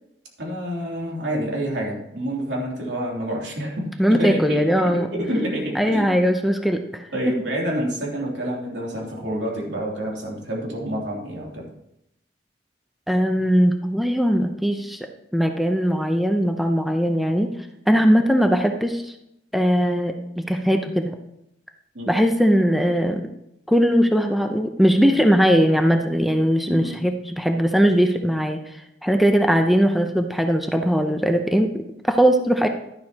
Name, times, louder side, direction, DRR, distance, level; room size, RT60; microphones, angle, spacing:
voice 1, 0.4-4.6 4.8-6.1 7.1-11.6 21.9-22.1 26.7-27.0, equal, 80° right, -3 dB, 3.0 m, -28 dB
voice 2, 4.0-5.1 5.7-7.0 13.1-15.0 15.3-17.5 17.9-19.1 19.5-21.1 22.1-23.2 23.7-28.6 29.0-32.7, equal, ahead, 4 dB, 0.6 m, -20 dB
11.5 x 11.0 x 2.9 m, 0.82 s
head